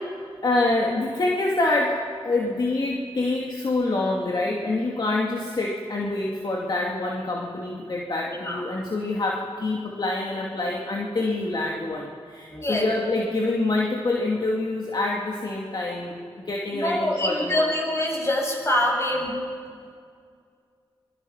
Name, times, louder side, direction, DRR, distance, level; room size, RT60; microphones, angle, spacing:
voice 1, 0.4-17.7, left 2 dB, 50° left, -2 dB, 2.6 m, -26 dB
voice 2, 8.3-8.6 12.5-12.9 16.7-19.4, left 1 dB, 30° left, -1 dB, 7.5 m, -25 dB
26.0 x 23.0 x 5.9 m, 2.2 s
wide cardioid pair, 80°, 10 cm